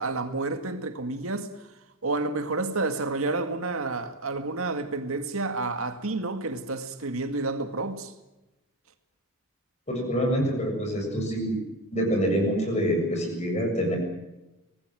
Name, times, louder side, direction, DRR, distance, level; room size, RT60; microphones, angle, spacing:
voice 1, 0.0-1.5 2.0-8.1, right 3 dB, 85° right, 2.1 m, -30 dB
voice 2, 9.9-11.6 11.9-14.0, equal, 30° left, 7.2 m, -26 dB
24.5 x 19.0 x 7.7 m
head